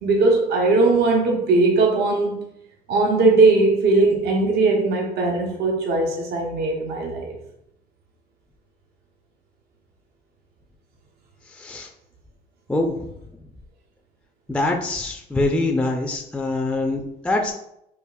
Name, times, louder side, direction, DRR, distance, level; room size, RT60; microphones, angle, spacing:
voice 1, 0.0-2.5 2.9-7.3, right 3 dB, 70° right, 0 dB, 0.7 m, -19 dB
voice 2, 11.5-11.9 12.7-13.1 14.5-17.5, left 2 dB, 5° left, 2 dB, 0.3 m, -24 dB
5.1 x 2.4 x 2.2 m, 0.79 s
cardioid pair, 110°, 17 cm